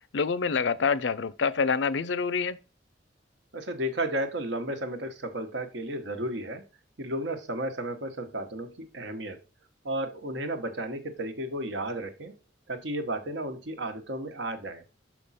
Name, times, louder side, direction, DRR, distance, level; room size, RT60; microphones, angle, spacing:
voice 1, 0.1-2.6, left 5 dB, 70° left, 0.5 m, -26 dB
voice 2, 3.5-6.6 7.0-9.4 9.8-12.3 12.7-14.8, right 1 dB, 70° right, 1.1 m, -33 dB
6.0 x 5.2 x 4.1 m
head